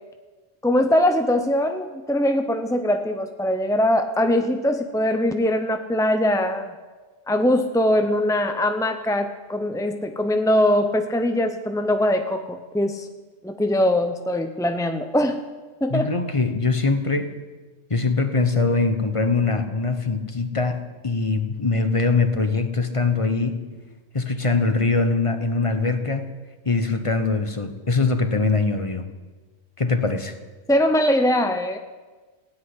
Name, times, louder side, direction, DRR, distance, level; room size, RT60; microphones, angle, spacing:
voice 1, 0.6-6.7 7.3-13.1 13.4-15.4 15.8-16.1 30.7-31.8, left 1 dB, 5° left, 7 dB, 0.4 m, -22 dB
voice 2, 15.9-17.3 17.9-23.6 24.1-26.2 26.6-29.1 29.8-30.3, left 3 dB, 30° left, 8 dB, 0.9 m, -22 dB
16.5 x 8.2 x 9.8 m, 1.3 s
omnidirectional pair, 1.3 m